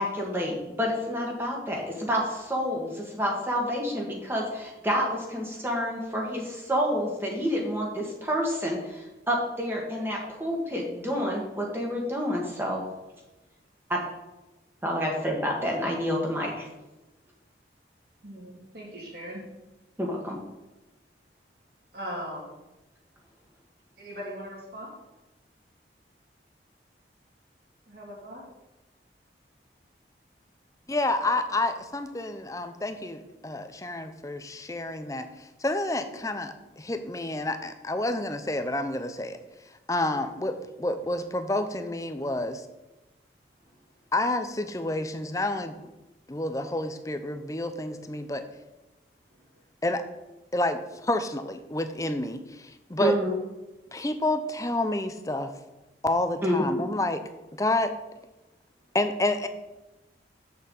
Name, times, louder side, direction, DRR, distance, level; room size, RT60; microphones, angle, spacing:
voice 1, 0.0-12.8 13.9-14.0 14.8-16.7 20.0-20.4 53.0-53.3 56.4-56.8, equal, 15° right, -2 dB, 1.6 m, -28 dB
voice 2, 18.2-19.4 21.9-22.6 24.0-24.9 27.9-28.4, equal, 55° right, -4 dB, 3.4 m, -39 dB
voice 3, 30.9-39.4 39.9-42.7 44.1-45.8 46.3-48.4 49.8-50.0 50.5-53.2 53.9-55.5 56.0-57.2 57.6-57.9 58.9-59.5, left 2 dB, 20° left, 9 dB, 0.6 m, -29 dB
8.1 x 6.7 x 5.4 m, 1.0 s
head